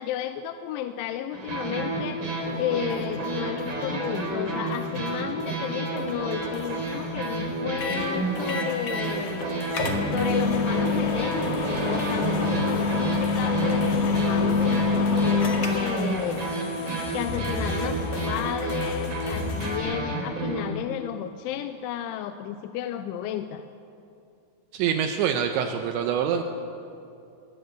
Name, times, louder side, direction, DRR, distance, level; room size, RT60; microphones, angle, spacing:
voice 1, 0.0-2.3 2.6-9.5 10.1-11.6 11.8-16.4 17.1-23.6, left 10 dB, 90° left, 9 dB, 3.1 m, -33 dB
sound 1, 1.3-20.7, right 2 dB, 25° right, 3.9 m, -30 dB
sound 2, 2.9-4.4 4.7-5.6 5.9-8.1 8.4-19.8, left 3 dB, 65° left, 4.2 m, -40 dB
Microwave Oven Sharp, 7.8-8.0 8.5-9.1 9.4-9.5 9.7-16.0, left 4 dB, 45° left, 2.4 m, -25 dB
voice 2, 24.7-26.4, right 8 dB, 80° right, 5 dB, 3.2 m, -25 dB
21.5 x 19.0 x 8.2 m, 2.6 s
omnidirectional pair, 5.3 m